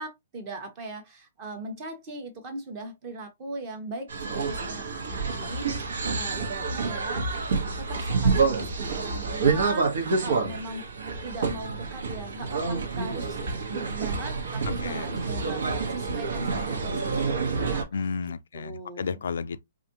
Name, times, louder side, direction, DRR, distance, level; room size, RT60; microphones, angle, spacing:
voice 1, 0.0-7.3 7.8-10.8 11.2-13.4 13.7-17.9 18.5-19.2, right 2 dB, 20° right, 1.0 m, -39 dB
sound 1, 4.1-17.8, right 4 dB, 70° right, 1.3 m, -28 dB
voice 2, 17.9-19.6, left 5 dB, 70° left, 0.4 m, -32 dB
4.9 x 2.6 x 2.9 m
hypercardioid pair, 180°, 0 cm